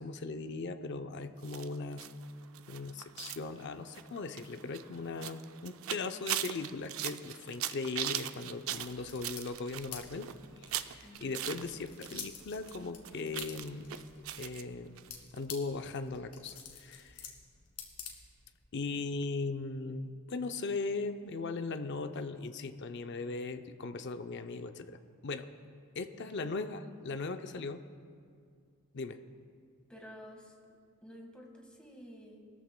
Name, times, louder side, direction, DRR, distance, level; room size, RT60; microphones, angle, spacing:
voice 1, 0.0-2.1 2.7-10.3 10.6-14.0 14.4-15.0 15.3-17.2 18.7-25.5 26.0-27.8 28.9-29.2, left 3 dB, 50° left, 8 dB, 0.5 m, -38 dB
sound 1, 1.4-12.3 12.5-14.6 15.0-15.1 15.4-15.5, right 11 dB, 65° right, 0.4 m, -40 dB
sound 2, 8.7-18.6, left 7 dB, 85° left, 1.9 m, -50 dB
voice 2, 11.0-11.4 26.2-26.7 29.9-30.5 31.0-32.5, equal, 5° left, -1 dB, 1.6 m, -51 dB
20.5 x 13.5 x 2.2 m, 2.2 s
head